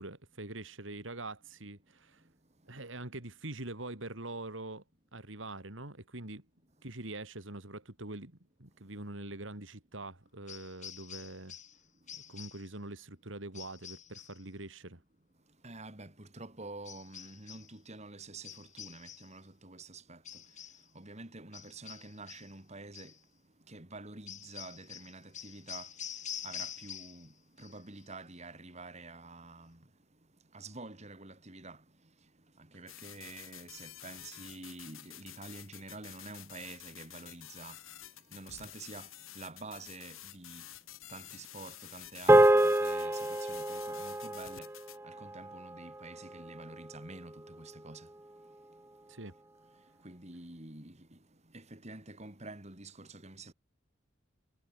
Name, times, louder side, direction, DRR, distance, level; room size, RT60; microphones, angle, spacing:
voice 1, 0.0-2.2 2.7-4.8 5.1-6.4 6.8-11.6 12.3-15.0 49.1-49.3, right 2 dB, 65° right, 3.2 m, -44 dB
sound 1, 10.5-11.8 12.1-12.7 13.5-14.4 16.8-17.7 18.4-19.4 20.2-20.9 21.5-22.5 22.9-23.2 24.3-27.3 27.6-28.1, left 9 dB, 35° left, 5.8 m, -46 dB
voice 2, 15.6-23.2 23.7-29.9 30.5-40.7 41.1-44.7 45.0-48.1 48.7-48.9 49.6-53.5, right 2 dB, 35° right, 3.5 m, -48 dB
sound 2, 32.9-45.0, left 13 dB, 80° left, 5.2 m, -50 dB
sound 3, 42.3-46.8, right 1 dB, 10° right, 0.7 m, -27 dB
head